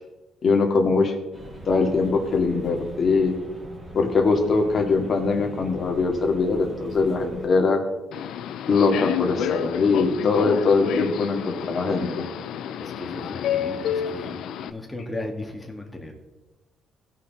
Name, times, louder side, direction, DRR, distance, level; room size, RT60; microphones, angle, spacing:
voice 1, 0.4-1.1 1.7-3.3 3.9-7.8 8.7-12.3, left 4 dB, 45° left, 3 dB, 2.1 m, -22 dB
sound 1, 1.3-7.5, left 1 dB, 30° right, 2.8 m, -40 dB
Subway metro underground, 8.1-14.7, left 9 dB, 80° left, 0.5 m, -29 dB
voice 2, 12.8-14.3 14.6-16.1, left 1 dB, 10° left, 2 dB, 2.2 m, -35 dB
16.5 x 5.8 x 4.2 m, 1.1 s
cardioid pair, 90°, 0 cm